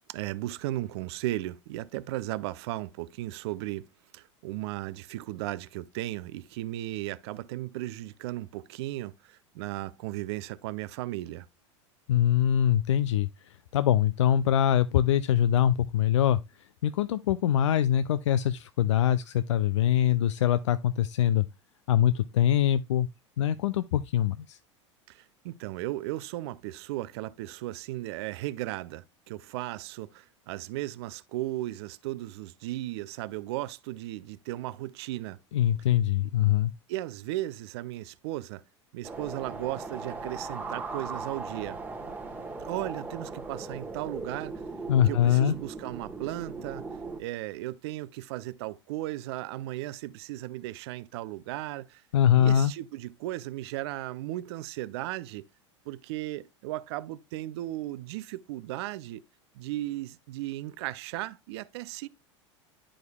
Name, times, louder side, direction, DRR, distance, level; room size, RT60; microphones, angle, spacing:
voice 1, 0.1-3.9 4.1-11.5 25.1-35.4 36.9-38.6 38.9-41.8 42.6-44.6 45.0-46.8 47.2-52.0 52.4-55.5 55.9-59.2 59.5-62.1, right 16 dB, 60° right, 0.5 m, -36 dB
voice 2, 12.1-13.3 13.7-16.4 16.8-21.4 21.9-23.1 23.4-24.6 35.5-36.7 44.9-45.5 52.1-52.7, left 10 dB, 70° left, 0.4 m, -23 dB
sound 1, 39.0-47.2, right 3 dB, 10° right, 1.2 m, -38 dB
10.5 x 5.0 x 2.3 m
figure-of-eight pair, 85°, 16 cm